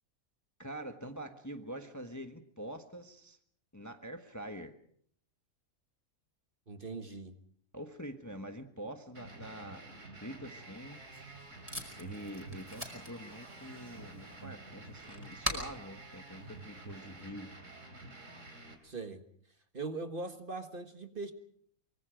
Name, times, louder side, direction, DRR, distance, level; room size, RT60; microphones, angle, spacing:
voice 1, 0.6-3.4 3.7-4.7 7.7-11.0 12.0-17.5, equal, 15° left, 6 dB, 1.2 m, -45 dB
voice 2, 6.7-7.3 18.8-19.2 19.7-21.3, right 3 dB, 40° right, 7 dB, 1.7 m, -40 dB
sound 1, 9.1-18.7, right 2 dB, 60° right, 3.8 m, -49 dB
Packing tape duct tape, 10.7-17.2, left 1 dB, 10° right, 4.9 m, -44 dB
25.0 x 24.0 x 5.1 m, 0.64 s
omnidirectional pair, 1.5 m